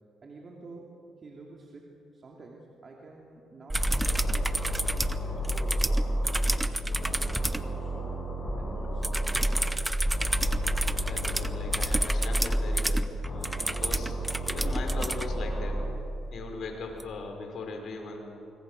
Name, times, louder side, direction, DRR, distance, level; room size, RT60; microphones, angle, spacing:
voice 1, 0.2-8.2 8.6-9.9, right 3 dB, 40° right, -1 dB, 2.9 m, -49 dB
sound 1, 3.7-6.6 6.9-9.7 10.0-12.8 13.2-15.9, equal, 35° left, 6.2 m, -31 dB
sound 2, 3.7-7.7 9.0-15.3 17.0-17.1, right 1 dB, 10° right, 0.9 m, -29 dB
voice 2, 11.0-15.8 16.3-18.3, left 3 dB, 60° left, 3 dB, 5.1 m, -39 dB
25.5 x 23.0 x 6.7 m, 2.8 s
cardioid pair, 90°, 0 cm